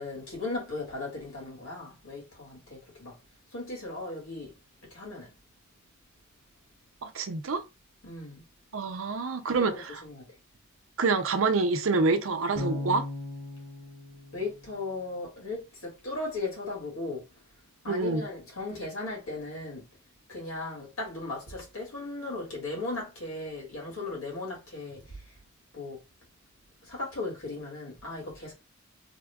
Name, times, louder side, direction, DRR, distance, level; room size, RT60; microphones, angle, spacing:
voice 1, 0.0-3.2 3.5-4.5 4.8-5.3 8.0-8.4 9.7-10.3 14.3-17.3 17.8-19.9 20.3-25.3 25.7-26.0 26.8-28.5, left 2 dB, 85° left, 2.1 m, -37 dB
voice 2, 7.0-7.6 8.7-10.0 11.0-13.1 17.9-18.2, right 3 dB, 70° right, 0.6 m, -27 dB
Bass guitar, 12.6-15.6, left 2 dB, 40° left, 0.9 m, -38 dB
3.5 x 2.4 x 3.5 m
head